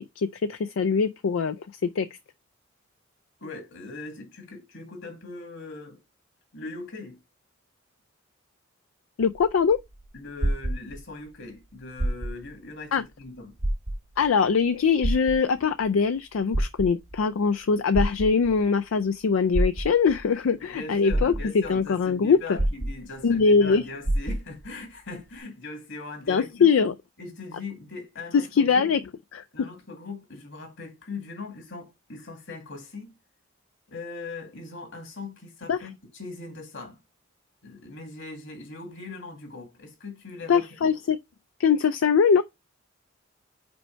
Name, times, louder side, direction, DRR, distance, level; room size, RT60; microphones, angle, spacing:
voice 1, 0.0-2.1 9.2-9.8 12.9-13.0 14.2-22.4 23.2-23.8 26.3-27.0 28.5-29.0 29.3-29.4 35.7-35.8 40.5-41.2 41.6-42.4, left 5 dB, 85° left, 0.4 m, -22 dB
voice 2, 3.4-6.0 6.5-7.2 10.1-13.5 20.7-26.7 27.2-28.9 29.5-33.1 33.9-37.0 37.6-40.9, left 3 dB, 65° left, 2.2 m, -40 dB
sound 1, 9.2-11.3 11.9-12.6 13.0-13.1 13.6-14.3 15.0-15.8 16.3-17.2 17.9-18.7 19.5-20.2 20.7-20.8 21.1-21.8 22.6-23.4 23.6-23.7 24.0-24.7 25.4-25.5, right 1 dB, 75° right, 1.8 m, -27 dB
5.2 x 4.4 x 4.5 m
head